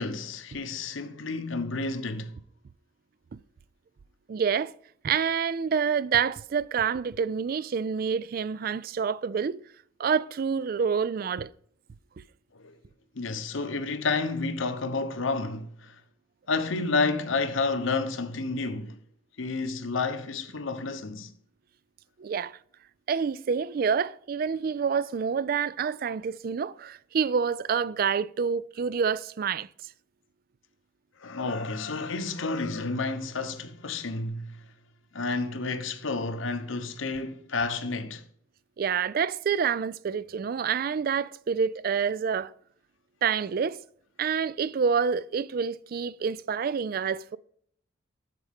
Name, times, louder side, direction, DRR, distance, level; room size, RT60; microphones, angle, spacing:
voice 1, 0.0-2.4 12.5-12.7 13.1-16.0 16.5-19.0 19.4-21.3 31.2-34.6 35.1-38.2, left 3 dB, 80° left, 0.8 m, -30 dB
voice 2, 4.3-4.7 5.0-9.6 10.0-11.5 22.2-22.6 23.1-29.7 38.8-42.5 43.2-43.8 44.2-47.4, right 6 dB, 45° right, 0.3 m, -27 dB
12.5 x 4.8 x 3.5 m
head